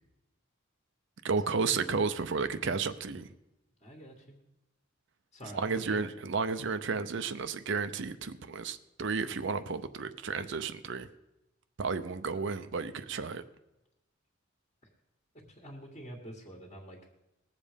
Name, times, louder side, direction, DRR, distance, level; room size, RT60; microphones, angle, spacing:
voice 1, 1.2-3.3 5.5-11.1 11.8-13.4, right 4 dB, 60° right, 11 dB, 0.6 m, -32 dB
voice 2, 3.8-4.4 5.3-6.1 15.5-17.0, equal, 30° left, 1 dB, 1.7 m, -46 dB
19.5 x 7.5 x 5.1 m, 0.96 s
head